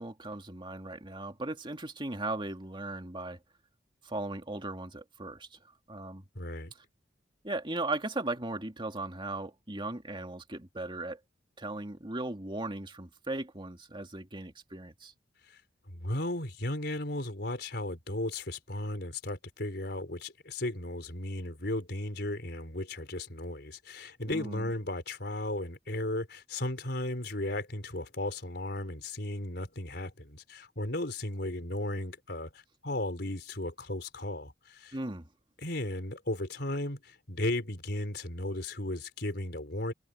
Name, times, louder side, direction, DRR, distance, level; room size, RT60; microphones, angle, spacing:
voice 1, 0.0-3.4 4.0-5.6 5.9-6.2 7.4-11.2 11.6-15.1 24.3-24.7 34.9-35.3, right 2 dB, 30° right, 2.5 m, -37 dB
voice 2, 6.3-6.7 15.5-15.6 15.9-35.0 35.6-39.9, left 1 dB, 65° left, 4.4 m, -35 dB
head